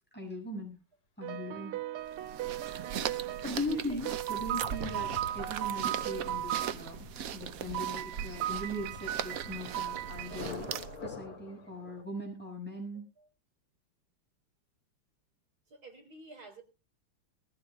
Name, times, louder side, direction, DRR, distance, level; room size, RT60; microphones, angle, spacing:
voice 1, 0.1-0.8 1.2-1.8 3.4-7.1 7.3-10.7 11.0-13.0, left 1 dB, 5° left, 0 dB, 6.9 m, -39 dB
sound 1, 1.2-3.5 4.1-6.7 7.7-10.4, right 13 dB, 85° right, 1.8 m, -36 dB
sound 2, 2.1-11.1, right 8 dB, 65° right, 0.8 m, -39 dB
Thunder, 3.1-12.0, left 4 dB, 80° left, 3.5 m, -48 dB
voice 2, 3.7-4.0 15.7-16.6, right 3 dB, 45° right, 4 dB, 4.3 m, -50 dB
21.0 x 15.0 x 2.3 m, 0.29 s
omnidirectional pair, 2.4 m